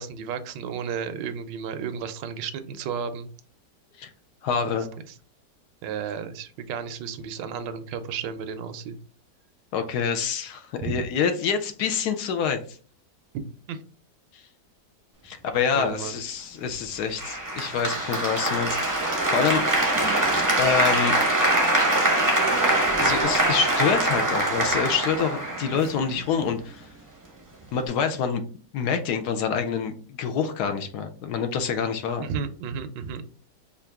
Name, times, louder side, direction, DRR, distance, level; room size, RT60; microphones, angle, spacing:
voice 1, 0.0-3.3 5.8-9.0 10.8-11.1 13.7-13.8 15.7-16.2 32.2-33.2, right 6 dB, 90° right, 10 dB, 1.3 m, -33 dB
voice 2, 4.4-4.9 9.7-12.8 14.3-14.4 15.2-19.6 20.6-21.2 23.0-26.9 27.7-28.4 28.7-32.3, left 6 dB, 75° left, 7 dB, 1.1 m, -26 dB
Applause, 17.2-26.2, right 1 dB, 25° right, 0.4 m, -23 dB
4.6 x 2.5 x 3.4 m, 0.40 s
omnidirectional pair, 1.9 m